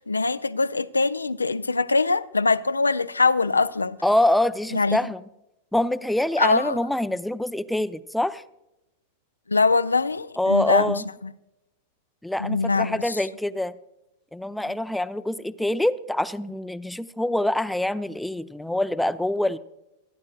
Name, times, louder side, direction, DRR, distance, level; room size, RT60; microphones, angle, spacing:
voice 1, 0.0-4.0 4.7-5.0 6.4-6.8 9.5-11.0 12.4-13.2 14.7-14.8, left 3 dB, 80° left, 0.4 m, -23 dB
voice 2, 4.0-5.2 5.7-8.4 10.4-11.0 12.2-13.7 14.3-19.6, left 1 dB, 5° left, 0.5 m, -25 dB
26.5 x 10.5 x 2.3 m
figure-of-eight pair, 90°, 0 cm